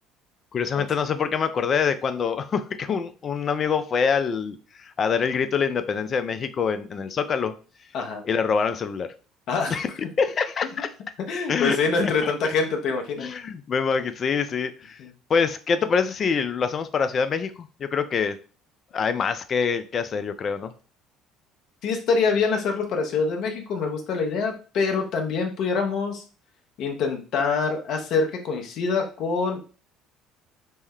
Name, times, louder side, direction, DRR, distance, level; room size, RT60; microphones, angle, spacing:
voice 1, 0.5-7.5 8.2-9.1 9.7-9.9 10.2-10.9 11.5-11.8 12.0-12.3 13.2-15.0 15.3-18.4 18.9-20.7, left 6 dB, 40° left, 10 dB, 0.3 m, -25 dB
voice 2, 9.5-9.8 11.3-13.3 15.0-15.1 21.8-26.2 26.8-29.7, left 4 dB, 60° left, 3 dB, 0.7 m, -25 dB
3.2 x 2.1 x 3.5 m, 0.37 s
hypercardioid pair, 60°, 0 cm